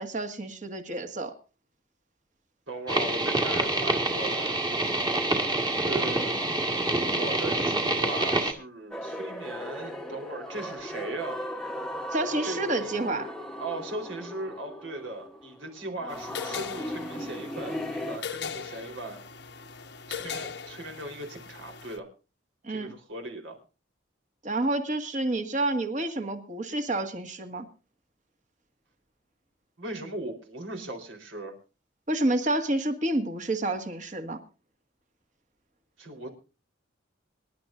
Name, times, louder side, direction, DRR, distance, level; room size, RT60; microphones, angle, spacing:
voice 1, 0.0-1.3 12.1-13.3 22.6-22.9 24.4-27.7 32.1-34.4, right 2 dB, 40° right, 6 dB, 1.8 m, -29 dB
voice 2, 2.7-4.6 5.8-6.4 7.0-11.4 12.4-13.0 13.6-19.2 20.1-22.1 22.7-23.6 29.8-31.5 36.0-36.3, right 2 dB, 75° right, 3 dB, 3.9 m, -38 dB
sound 1, 2.9-8.5, right 2 dB, 20° right, 1.7 m, -26 dB
sound 2, 8.9-18.2, left 1 dB, 5° left, 1.1 m, -37 dB
sound 3, 16.1-22.0, left 6 dB, 60° left, 1.0 m, -39 dB
26.0 x 11.5 x 2.6 m, 0.32 s
head